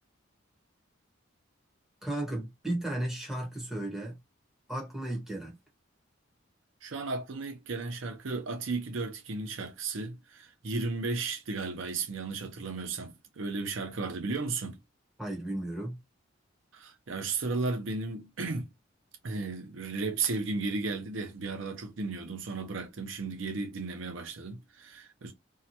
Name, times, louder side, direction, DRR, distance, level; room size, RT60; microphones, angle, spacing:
voice 1, 2.0-4.2 4.7-5.5 15.2-16.0, right 1 dB, ahead, 1.0 m, -34 dB
voice 2, 6.8-14.8 16.7-18.7 19.2-25.3, right 3 dB, 75° right, 0.6 m, -34 dB
2.7 x 2.2 x 2.8 m
head